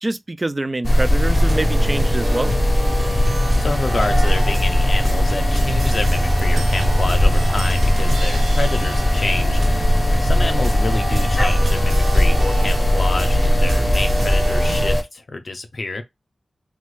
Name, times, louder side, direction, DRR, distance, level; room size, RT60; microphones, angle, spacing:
voice 1, 0.0-2.5, right 2 dB, 35° right, 0.4 m, -25 dB
sound 1, 0.8-15.0, left 1 dB, 25° left, 0.7 m, -18 dB
sound 2, 1.2-14.9, right 2 dB, 85° right, 0.7 m, -28 dB
voice 2, 3.6-9.6 10.2-16.0, left 3 dB, 65° left, 0.6 m, -28 dB
3.1 x 2.2 x 3.1 m
cardioid pair, 50°, 0 cm